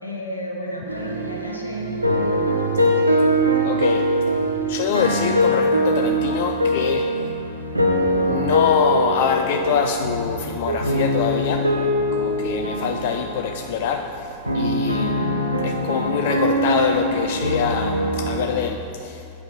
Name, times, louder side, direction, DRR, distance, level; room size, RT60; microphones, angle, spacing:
voice 1, 0.0-3.4, equal, 90° left, -1 dB, 1.0 m, -33 dB
sound 1, 0.9-18.5, equal, 85° right, 0.6 m, -22 dB
voice 2, 3.6-4.1 4.7-7.2 8.3-11.7 12.1-19.3, left 8 dB, 50° left, 5 dB, 0.3 m, -25 dB
8.2 x 4.8 x 5.2 m, 2.7 s
figure-of-eight pair, 90°, 0 cm